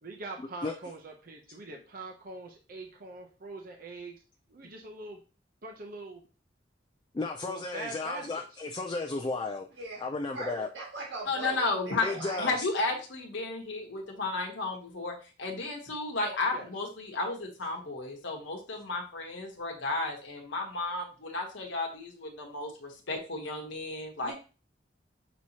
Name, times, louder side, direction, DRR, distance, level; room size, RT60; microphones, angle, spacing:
voice 1, 0.0-4.2 4.5-5.2 5.6-6.3 7.4-8.6 16.5-16.7, right 3 dB, 50° right, 2 dB, 0.7 m, -43 dB
voice 2, 7.1-9.7 10.0-10.7 12.0-12.7, left 3 dB, 25° left, 5 dB, 0.3 m, -34 dB
voice 3, 10.3-12.5 24.2-24.3, right 2 dB, 75° right, -3 dB, 1.5 m, -40 dB
voice 4, 11.3-12.1 12.4-24.3, left 3 dB, 80° left, 1 dB, 1.0 m, -33 dB
6.1 x 2.9 x 2.8 m, 0.35 s
head